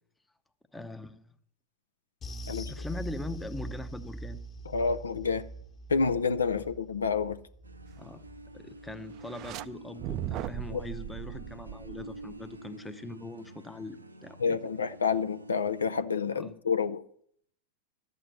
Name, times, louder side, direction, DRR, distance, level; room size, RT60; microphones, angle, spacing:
voice 1, 0.7-1.2 2.5-4.4 8.0-8.2 8.5-14.6 16.3-16.5, left 2 dB, 5° left, 9 dB, 0.7 m, -41 dB
sound 1, 2.2-10.9 11.2-11.4 11.8-11.9, right 2 dB, 25° left, 1.3 m, -43 dB
voice 2, 4.7-5.4 5.9-7.4 10.7-10.8 14.4-17.0, left 5 dB, 70° left, 12 dB, 0.5 m, -28 dB
sound 2, 7.6-16.0, right 1 dB, 80° right, 0.6 m, -48 dB
sound 3, 9.2-9.7 10.0-12.6, right 12 dB, 40° right, 0.4 m, -38 dB
12.5 x 7.6 x 6.6 m, 0.66 s
figure-of-eight pair, 90°, 0 cm